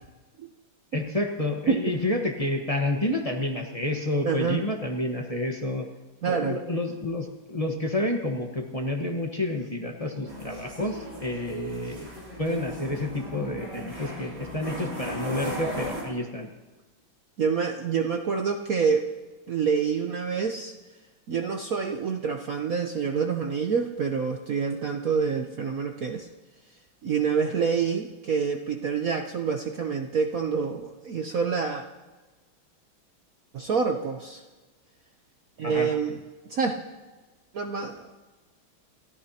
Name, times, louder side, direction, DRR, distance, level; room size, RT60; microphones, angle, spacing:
voice 1, 0.9-5.9 6.3-12.1 12.4-16.5 35.6-35.9, left 1 dB, 20° left, 2 dB, 1.1 m, -29 dB
voice 2, 4.2-4.6 6.2-6.6 17.4-19.1 19.5-20.7 21.3-26.3 27.0-31.8 33.5-34.4 35.6-36.2 36.5-36.8 37.5-38.1, right 6 dB, 55° right, 4 dB, 1.0 m, -27 dB
sound 1, 10.2-16.0, equal, 35° right, 4.9 m, -37 dB
29.0 x 14.0 x 2.9 m, 1.2 s
omnidirectional pair, 2.2 m